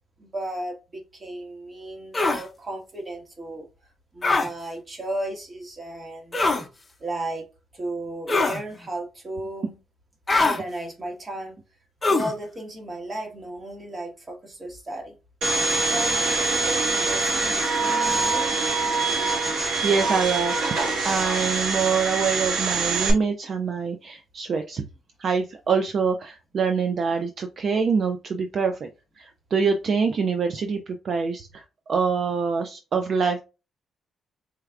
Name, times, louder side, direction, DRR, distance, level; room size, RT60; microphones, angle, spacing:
voice 1, 0.2-3.7 4.1-6.4 7.0-7.5 7.7-9.8 10.4-11.6 12.0-15.1 15.9-18.5, right 1 dB, 30° right, 1.5 m, -34 dB
sound 1, 2.1-2.4 4.2-4.5 6.3-6.6 8.3-8.6 10.3-10.6 12.0-12.3, left 3 dB, 25° left, 0.8 m, -22 dB
Domestic sounds home sounds, 15.4-23.1, right 3 dB, 75° right, 1.7 m, -24 dB
voice 2, 19.5-20.8 21.0-24.8 25.2-28.9 29.2-33.4, right 5 dB, 50° right, 0.5 m, -25 dB
4.4 x 3.4 x 2.4 m
cardioid pair, 90°, 0 cm